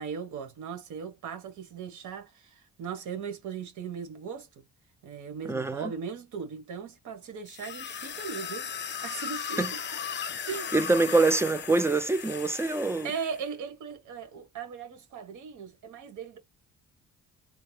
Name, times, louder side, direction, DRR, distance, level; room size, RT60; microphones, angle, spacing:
voice 1, 0.0-4.6 5.0-8.7 9.0-9.8 10.4-10.7 11.1-11.2 13.0-16.4, right 6 dB, 80° right, 1.6 m, -38 dB
voice 2, 5.4-5.9 9.6-9.7 10.7-13.1, right 3 dB, 10° right, 0.5 m, -25 dB
sound 1, 7.5-13.4, left 7 dB, 35° left, 0.7 m, -37 dB
3.9 x 2.2 x 3.2 m
cardioid pair, 90°, 30 cm